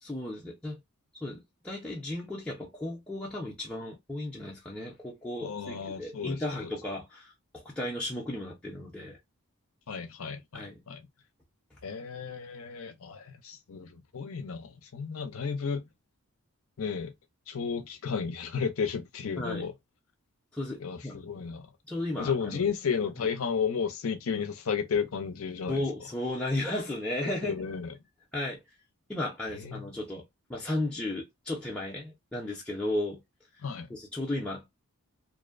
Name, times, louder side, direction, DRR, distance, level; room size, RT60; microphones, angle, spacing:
voice 1, 0.0-0.8 1.2-9.2 10.5-10.8 19.4-19.7 20.5-21.2 21.9-22.7 23.2-23.3 25.7-27.6 28.3-28.6 29.1-33.2 33.6-33.7 33.9-34.7, left 1 dB, 5° left, 0.5 m, -35 dB
voice 2, 5.4-6.7 9.9-11.0 11.8-15.8 16.8-17.1 17.5-19.7 20.8-21.7 22.2-25.8 27.2-27.9 29.5-29.8 33.6-33.9, left 6 dB, 70° left, 0.6 m, -33 dB
2.6 x 2.0 x 2.4 m
head